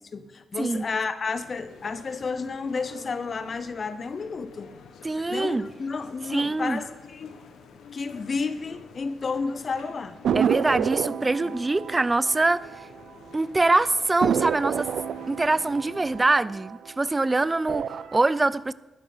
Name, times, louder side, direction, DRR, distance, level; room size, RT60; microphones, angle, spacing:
voice 1, 0.1-4.7 5.3-7.4 7.9-10.2 11.4-11.6, left 4 dB, 50° left, 0.9 m, -31 dB
sound 1, 1.4-16.2, left 5 dB, 85° left, 1.3 m, -49 dB
voice 2, 5.0-5.7 6.3-6.8 10.4-12.7 13.3-14.9 15.3-18.7, right 2 dB, 25° right, 0.5 m, -24 dB
sound 2, 10.2-13.3 13.6-13.7 14.2-17.1 17.6-18.2, right 8 dB, 75° right, 0.5 m, -29 dB
11.5 x 9.8 x 5.7 m
cardioid pair, 65°, 0 cm